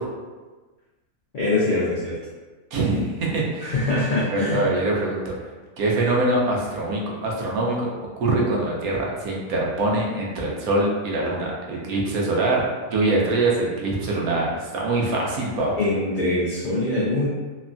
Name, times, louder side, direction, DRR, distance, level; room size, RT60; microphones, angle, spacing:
voice 1, 1.3-2.1 3.6-4.7 15.8-17.3, left 2 dB, 80° left, -7 dB, 0.4 m, -23 dB
voice 2, 2.7-3.8 4.3-5.3 5.8-7.9 8.2-15.7, right 2 dB, 75° right, -3 dB, 1.1 m, -23 dB
3.2 x 2.2 x 2.5 m, 1.3 s
omnidirectional pair, 1.6 m